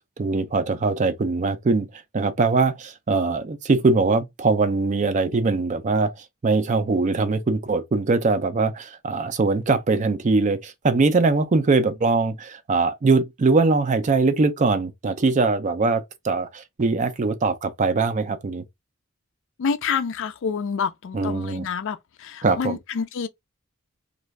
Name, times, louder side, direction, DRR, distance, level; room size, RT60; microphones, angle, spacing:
voice 1, 0.2-18.6 21.1-21.7 22.4-22.8, right 3 dB, 35° right, 0.4 m, -22 dB
voice 2, 19.6-23.3, left 6 dB, 60° left, 0.4 m, -28 dB
2.5 x 2.3 x 3.1 m
head